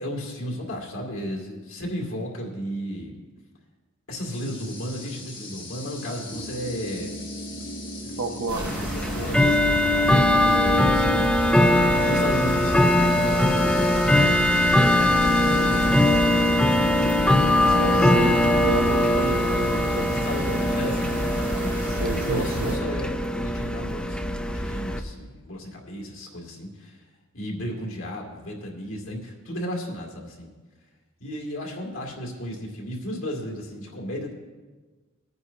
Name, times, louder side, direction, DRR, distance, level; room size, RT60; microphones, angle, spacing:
voice 1, 0.0-3.1 4.1-7.2 8.0-11.6 12.1-14.4 15.5-17.1 17.6-18.1 20.1-27.0 27.3-30.5 31.2-34.4, equal, 75° left, -1 dB, 2.4 m, -34 dB
sound 1, 4.3-19.8, equal, 20° left, 1.4 m, -39 dB
voice 2, 8.2-8.7 17.7-20.3 22.0-22.8, right 3 dB, 70° right, 8 dB, 0.7 m, -31 dB
sound 2, 8.5-22.8, equal, 25° right, 2.3 m, -32 dB
Bell / Tick-tock, 8.6-25.0, left 1 dB, 5° left, 0.5 m, -21 dB
19.5 x 9.6 x 2.8 m, 1.3 s
head